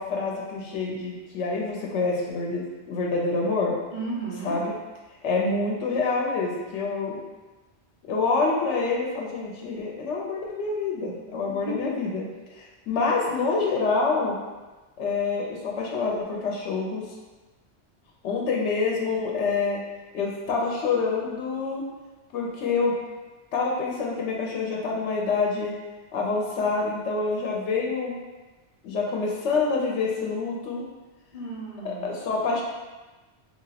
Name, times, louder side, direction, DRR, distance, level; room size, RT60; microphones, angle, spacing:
voice 1, 0.0-3.8 4.4-4.7 5.2-7.2 8.1-12.2 12.5-14.4 15.0-17.1 18.2-19.8 20.1-21.8 22.3-23.0 23.5-25.7 26.1-28.1 28.8-30.8 31.8-32.6, left 4 dB, 90° left, -2 dB, 0.9 m, -27 dB
voice 2, 3.9-4.6 11.5-12.0 31.3-32.1, right 2 dB, 40° left, -5 dB, 0.6 m, -34 dB
2.9 x 2.9 x 2.7 m, 1.2 s
omnidirectional pair, 1.2 m